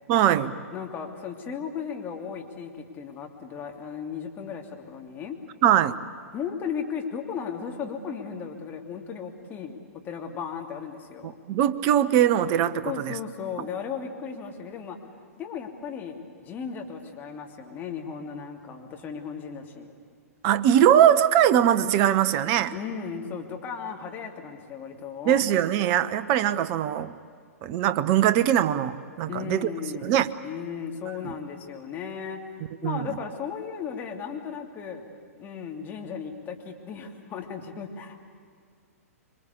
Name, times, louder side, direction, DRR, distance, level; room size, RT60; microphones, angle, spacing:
voice 1, 0.1-0.5 5.6-5.9 11.2-13.1 20.4-22.7 25.3-27.1 27.6-29.7 30.0-30.3 31.2-31.3 32.8-33.1, right 10 dB, 35° right, 13 dB, 1.0 m, -21 dB
voice 2, 0.7-5.4 6.3-11.3 12.8-15.0 15.4-16.2 16.4-19.9 22.7-25.4 29.3-35.0 35.4-38.2, left 7 dB, 25° left, 2 dB, 3.0 m, -36 dB
26.5 x 24.0 x 8.5 m, 2.1 s
figure-of-eight pair, 115°, 8 cm